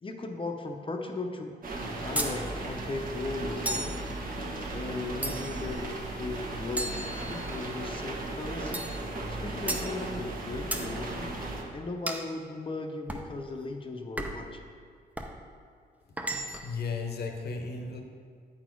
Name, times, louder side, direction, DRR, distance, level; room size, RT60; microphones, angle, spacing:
voice 1, 0.0-3.9 4.7-5.9 6.2-11.3 11.7-14.7, left 3 dB, 30° left, 4 dB, 0.6 m, -37 dB
sound 1, 1.6-11.6, right 2 dB, 55° right, 1.1 m, -36 dB
sound 2, 2.2-2.4 3.7-4.0 5.2-5.7 6.8-7.7 8.7-9.0 9.7-9.9 10.7-10.9 12.1-12.3 13.1-13.3 14.2-14.5 15.2-15.4 16.2-16.8, right 1 dB, 10° right, 0.5 m, -34 dB
voice 2, 16.6-18.0, left 4 dB, 70° left, 4 dB, 0.9 m, -34 dB
8.7 x 4.2 x 4.6 m, 2.1 s
cardioid pair, 110°, 17 cm